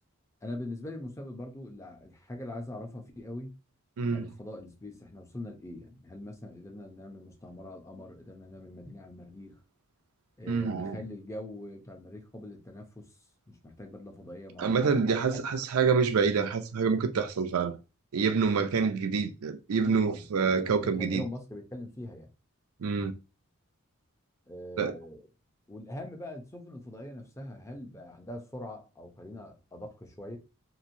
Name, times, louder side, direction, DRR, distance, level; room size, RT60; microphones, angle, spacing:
voice 1, 0.4-3.6 4.0-9.5 10.4-13.1 13.5-14.9 15.3-15.4 18.5-18.7 19.8-20.2 20.6-22.3 24.5-25.2 25.7-30.4, left 1 dB, 15° left, 0.5 m, -42 dB
voice 2, 4.0-4.3 10.5-11.0 14.6-17.8 18.1-21.2 22.8-23.1 24.8-24.9, right 5 dB, 85° right, 0.5 m, -27 dB
2.9 x 2.6 x 2.6 m
head